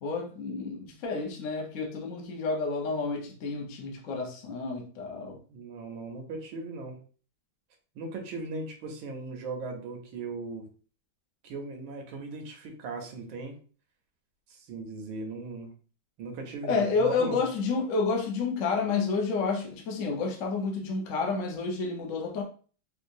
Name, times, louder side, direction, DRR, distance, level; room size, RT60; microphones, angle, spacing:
voice 1, 0.0-5.4 16.7-22.4, left 4 dB, 55° left, 0.8 m, -30 dB
voice 2, 5.5-7.0 7.9-10.7 11.4-13.5 14.5-15.7 16.2-17.4, right 3 dB, 80° right, 1.5 m, -38 dB
4.5 x 2.4 x 2.6 m
omnidirectional pair, 2.2 m